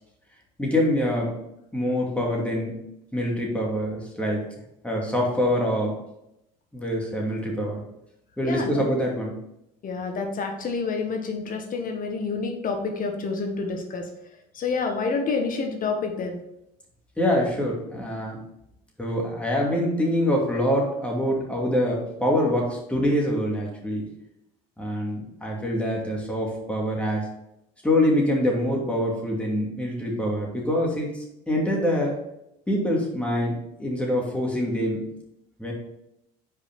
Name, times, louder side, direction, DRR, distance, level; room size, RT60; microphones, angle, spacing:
voice 1, 0.6-1.4 1.7-2.8 3.1-4.5 4.8-6.0 6.7-7.8 8.4-9.4 17.2-18.4 19.0-24.0 24.8-27.3 27.8-32.2 32.7-35.0 35.6-35.7, equal, 5° left, -2 dB, 2.5 m, -25 dB
voice 2, 8.4-8.9 9.8-14.1 14.5-16.4, left 4 dB, 45° left, 4 dB, 1.3 m, -28 dB
5.4 x 4.9 x 5.3 m, 0.82 s
supercardioid pair, 90°, 19 cm